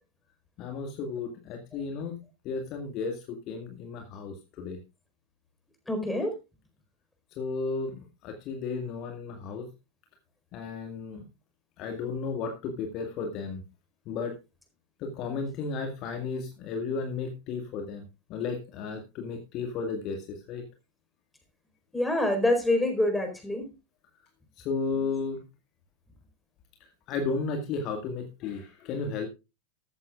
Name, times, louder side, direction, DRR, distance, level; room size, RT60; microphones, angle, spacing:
voice 1, 0.6-2.2 2.4-4.8 7.4-9.7 10.5-11.2 11.8-13.6 14.1-14.3 15.0-18.0 18.3-20.6 24.6-25.4 27.1-29.3, left 4 dB, 40° left, 4 dB, 2.0 m, -33 dB
voice 2, 5.9-6.3 21.9-23.7, left 1 dB, 5° left, 5 dB, 4.6 m, -26 dB
14.5 x 14.0 x 2.4 m, 0.27 s
figure-of-eight pair, 90°, 0 cm